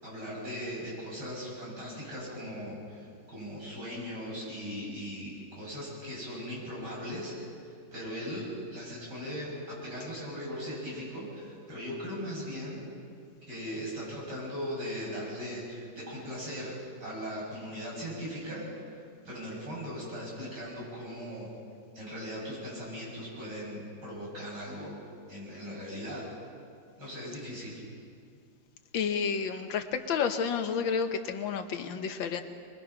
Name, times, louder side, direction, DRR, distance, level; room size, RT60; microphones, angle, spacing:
voice 1, 0.0-7.3 7.9-12.8 13.5-18.6 19.2-21.5 21.9-25.0 25.3-26.2 27.0-27.8, equal, 60° right, -5 dB, 8.3 m, -39 dB
voice 2, 28.9-32.4, left 6 dB, 85° left, 7 dB, 1.9 m, -30 dB
24.5 x 21.5 x 5.9 m, 2.3 s
omnidirectional pair, 2.0 m